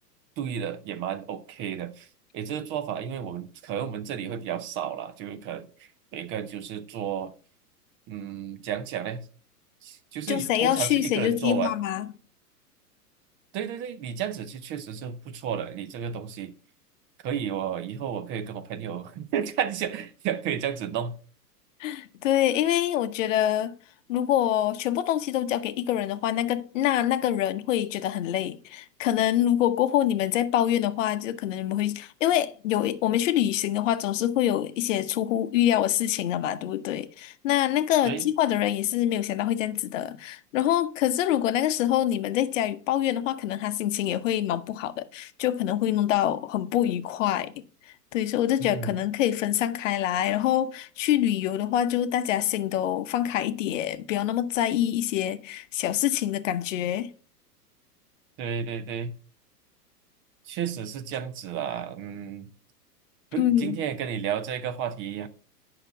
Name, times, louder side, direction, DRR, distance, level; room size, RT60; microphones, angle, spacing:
voice 1, 0.4-2.1 2.3-5.7 6.1-7.3 8.1-9.2 9.8-11.7 13.5-16.5 17.2-21.1 38.0-38.3 48.6-48.9 58.4-59.1 60.5-62.5 63.3-65.3, right 8 dB, 25° right, 0.6 m, -32 dB
voice 2, 10.3-12.1 21.8-23.7 24.1-47.5 48.1-57.1 63.4-63.8, left 11 dB, 50° left, 0.8 m, -25 dB
8.9 x 5.8 x 4.8 m
figure-of-eight pair, 105°, 48 cm